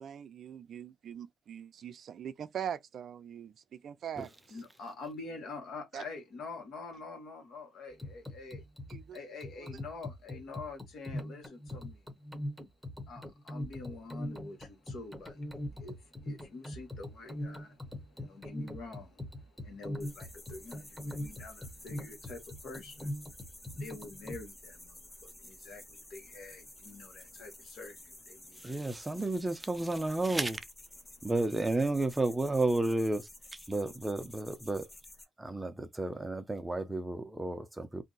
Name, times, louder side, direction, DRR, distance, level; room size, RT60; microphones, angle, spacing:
voice 1, 0.0-4.3 5.9-6.0 8.9-9.2 9.6-9.7, right 9 dB, 60° right, 0.4 m, -42 dB
voice 2, 4.5-8.6 9.1-12.1 13.1-28.9 31.1-31.3, left 3 dB, 70° left, 1.3 m, -47 dB
sound 1, 7.9-24.5, left 1 dB, 5° left, 0.9 m, -41 dB
sound 2, 20.0-35.2, left 1 dB, 20° left, 1.1 m, -52 dB
voice 3, 28.6-30.6 31.2-34.9 35.4-38.0, right 2 dB, 15° right, 0.6 m, -32 dB
2.6 x 2.2 x 3.9 m
cardioid pair, 90°, 0 cm